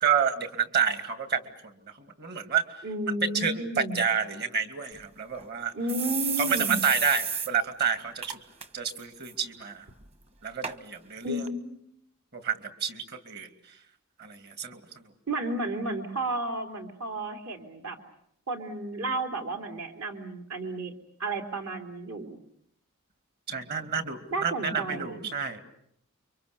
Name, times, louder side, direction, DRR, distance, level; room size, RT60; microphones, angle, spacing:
voice 1, 0.0-1.7 2.0-2.6 3.2-5.7 6.4-8.4 8.7-9.8 10.4-11.4 12.3-13.5 14.2-15.0 23.5-25.6, right 6 dB, 50° right, 9 dB, 2.7 m, -29 dB
voice 2, 2.8-4.0 5.7-6.8 11.2-11.8 15.3-18.0 18.5-20.9 21.2-22.4 24.3-25.2, right 1 dB, 65° right, 4 dB, 3.2 m, -32 dB
sound 1, 4.9-5.0 5.4-5.5 5.9-7.5 7.8-7.9 8.2-8.7 9.0-9.3 10.0-10.1 10.6-10.8 11.5-11.6, right 7 dB, 30° right, 1.3 m, -32 dB
30.0 x 24.5 x 6.9 m, 0.70 s
head